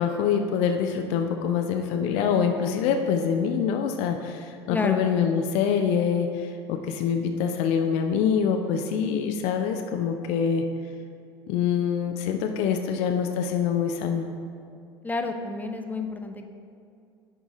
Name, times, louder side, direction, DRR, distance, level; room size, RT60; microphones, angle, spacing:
voice 1, 0.0-10.6 11.5-14.3, left 7 dB, 55° left, 5 dB, 0.5 m, -25 dB
voice 2, 4.7-5.0 15.0-16.5, left 3 dB, 10° left, 5 dB, 0.6 m, -29 dB
10.5 x 4.0 x 3.7 m, 2.4 s
figure-of-eight pair, 70°, 13 cm